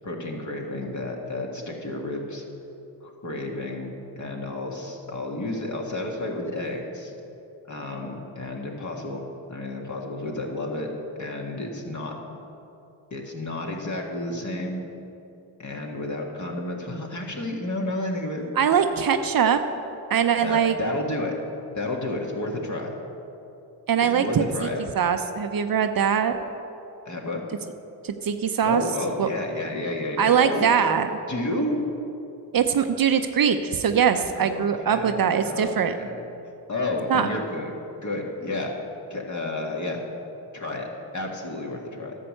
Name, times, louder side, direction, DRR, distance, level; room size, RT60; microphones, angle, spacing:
voice 1, 0.0-2.4 3.0-7.1 7.7-9.2 9.5-10.9 11.2-12.1 13.1-14.8 15.6-18.4 20.4-21.3 21.7-22.9 24.0-24.8 27.1-27.4 28.6-31.0 31.3-31.8 34.3-36.2 36.7-37.7 38.0-38.8 39.1-40.0 40.5-40.9 41.1-42.2, left 2 dB, 40° left, 0 dB, 2.1 m, -31 dB
voice 2, 18.6-19.6 20.1-20.7 23.9-24.7 25.0-26.4 28.0-28.8 29.2-29.3 30.2-31.1 32.5-36.0 37.1-37.3, right 7 dB, 45° right, 8 dB, 0.8 m, -22 dB
11.0 x 6.9 x 6.6 m, 2.8 s
hypercardioid pair, 45°, 47 cm